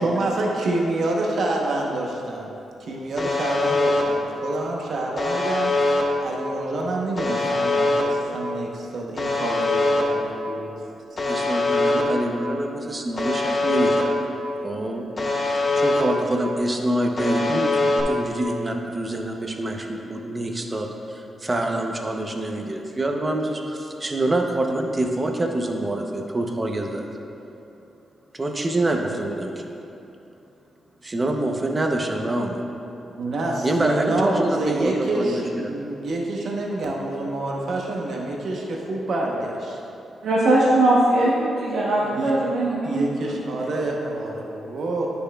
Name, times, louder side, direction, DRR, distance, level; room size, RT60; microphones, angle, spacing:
voice 1, 0.0-2.5 2.9-5.7 6.2-10.8 33.2-39.8 42.0-42.3 42.8-45.1, right 2 dB, 65° right, -1 dB, 0.9 m, -27 dB
Alarm, 3.2-4.0 5.2-6.0 7.2-8.0 9.2-10.0 11.2-12.0 13.2-14.0 15.2-16.0 17.2-18.0, left 2 dB, 35° left, 0.7 m, -22 dB
voice 2, 11.3-14.3 14.6-15.1 15.4-17.7 18.1-27.1 28.3-29.6 31.0-32.6 33.6-35.3, right 1 dB, 25° right, 3 dB, 0.7 m, -26 dB
voice 3, 40.2-43.1, right 1 dB, 85° right, -8 dB, 1.2 m, -20 dB
9.8 x 6.7 x 2.3 m, 2.8 s
cardioid pair, 95°, 0 cm